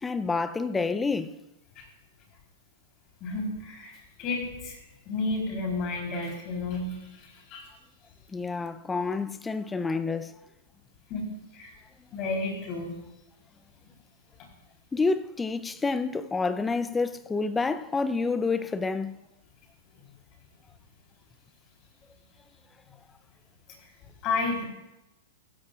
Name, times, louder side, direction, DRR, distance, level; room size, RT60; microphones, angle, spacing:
voice 1, 0.0-1.4 8.3-10.3 14.9-19.2, left 4 dB, 15° left, 0.6 m, -28 dB
voice 2, 3.2-4.8 5.1-7.7 11.1-11.7 12.1-13.0 24.2-24.6, left 3 dB, 40° left, 3.7 m, -32 dB
15.5 x 13.0 x 2.4 m
hypercardioid pair, 110°, 0 cm